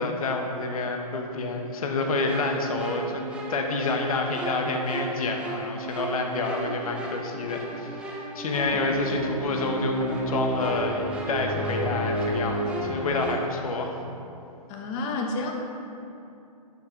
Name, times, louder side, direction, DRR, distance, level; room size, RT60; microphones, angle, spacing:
voice 1, 0.0-3.2 3.5-13.9, left 3 dB, 65° left, 3 dB, 1.3 m, -28 dB
sound 1, 2.0-13.4, right 1 dB, 5° right, 0.7 m, -32 dB
voice 2, 14.7-15.5, left 3 dB, 25° left, 2 dB, 1.0 m, -30 dB
12.0 x 5.9 x 3.9 m, 2.7 s
hypercardioid pair, 145°, 20 cm